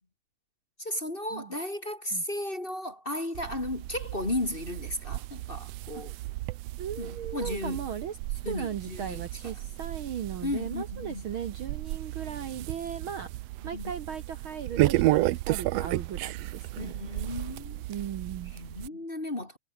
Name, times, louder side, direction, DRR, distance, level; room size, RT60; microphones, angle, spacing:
voice 1, 0.8-6.1 7.0-7.8 8.4-9.5 10.4-11.3 13.7-13.9 16.8-17.8 18.5-19.6, left 1 dB, 20° left, 2.1 m, -34 dB
sound 1, 3.3-18.9, right 17 dB, 75° right, 1.6 m, -33 dB
voice 2, 6.8-8.2 8.4-13.3 13.6-16.9 17.9-18.5, right 8 dB, 55° right, 1.7 m, -37 dB
omnidirectional pair, 3.3 m